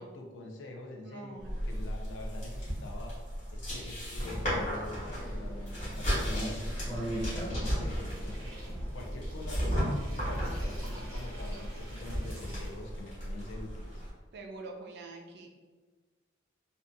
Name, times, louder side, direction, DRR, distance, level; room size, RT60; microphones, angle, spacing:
voice 1, 0.0-3.2 3.5-6.5 6.9-8.5 8.9-14.0, left 2 dB, 70° left, 1 dB, 0.4 m, -45 dB
voice 2, 1.0-1.9 10.2-10.4 14.3-15.5, right 3 dB, 55° right, 2 dB, 0.4 m, -46 dB
sound 1, 1.4-14.1, equal, 35° left, 1.1 m, -35 dB
sound 2, 4.6-12.5, right 1 dB, 10° left, 0.7 m, -43 dB
sound 3, 6.7-12.7, right 1 dB, 85° right, 0.8 m, -46 dB
2.6 x 2.3 x 2.4 m, 1.4 s
head